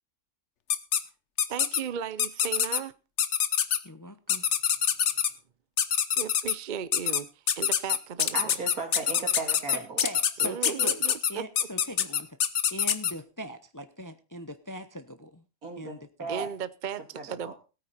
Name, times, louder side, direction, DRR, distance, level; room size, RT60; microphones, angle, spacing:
sound 1, 0.7-1.0 1.4-1.8 2.2-2.8 3.2-3.8 4.3-5.3 5.8-6.5 6.9-7.2 7.5-13.1, left 8 dB, 55° left, 1.1 m, -25 dB
voice 1, 1.5-2.9 6.2-8.4 10.4-11.4 16.3-17.5, right 8 dB, 50° right, 0.6 m, -36 dB
voice 2, 3.8-4.5 9.7-11.0 11.3-12.4 12.7-15.4 15.8-16.3, equal, 15° left, 0.7 m, -40 dB
voice 3, 8.3-10.0 15.6-16.5 17.1-17.5, right 4 dB, 75° right, 3.2 m, -36 dB
17.5 x 9.3 x 4.2 m
omnidirectional pair, 1.5 m